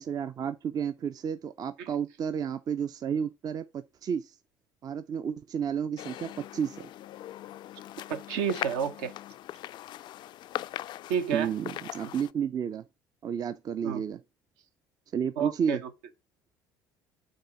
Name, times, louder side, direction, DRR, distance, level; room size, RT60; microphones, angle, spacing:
voice 1, 0.0-4.3 4.8-6.9 11.3-12.8 13.2-14.2 15.1-15.8, right 7 dB, 40° right, 0.5 m, -32 dB
sound 1, 6.0-12.3, left 13 dB, 45° left, 0.3 m, -40 dB
voice 2, 8.1-9.1 11.1-11.5 13.8-14.0 15.4-15.8, right 7 dB, 70° right, 1.0 m, -30 dB
6.5 x 4.0 x 5.9 m
figure-of-eight pair, 55°, 10 cm